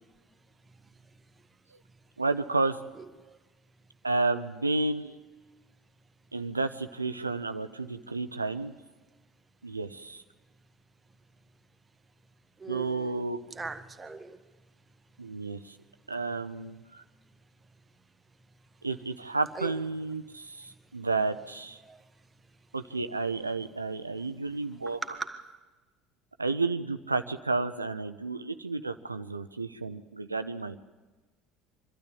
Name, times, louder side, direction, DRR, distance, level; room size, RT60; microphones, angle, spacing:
voice 1, 2.2-2.8 4.0-5.2 6.3-8.7 9.6-10.2 12.7-13.4 15.2-15.8 16.1-17.0 18.8-21.8 22.7-25.0 26.4-30.8, right 3 dB, 90° right, 0.7 m, -31 dB
voice 2, 3.0-3.4 12.6-14.4 19.6-19.7 21.8-22.0 24.8-25.6, right 4 dB, 20° right, 1.7 m, -40 dB
25.5 x 12.5 x 8.8 m
figure-of-eight pair, 65°, 0 cm